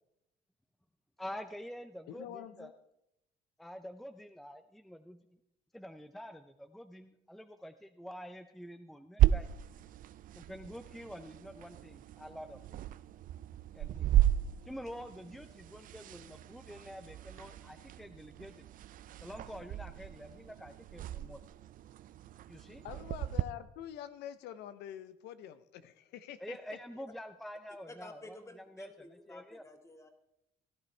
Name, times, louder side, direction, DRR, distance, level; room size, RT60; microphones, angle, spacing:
voice 1, 1.2-2.7 3.6-5.2 5.7-9.5 10.4-12.8 13.7-14.2 14.7-18.7 19.2-21.4 22.5-22.8 26.4-28.9 29.3-29.6, equal, ahead, 8 dB, 0.5 m, -47 dB
voice 2, 2.1-2.7 22.8-26.6 27.0-27.1, left 10 dB, 80° left, 12 dB, 0.6 m, -46 dB
sound 1, 9.2-23.4, right 12 dB, 55° right, 0.4 m, -34 dB
voice 3, 27.9-30.1, left 1 dB, 15° left, 6 dB, 1.6 m, -51 dB
17.0 x 11.0 x 3.3 m, 0.83 s
cardioid pair, 110°, 17 cm